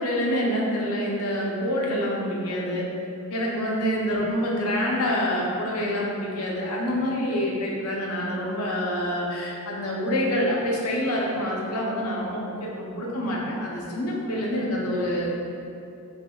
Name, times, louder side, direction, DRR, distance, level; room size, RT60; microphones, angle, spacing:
voice 1, 0.0-2.9 3.3-15.3, equal, 80° left, -2 dB, 0.6 m, -26 dB
3.3 x 3.0 x 2.2 m, 2.6 s
head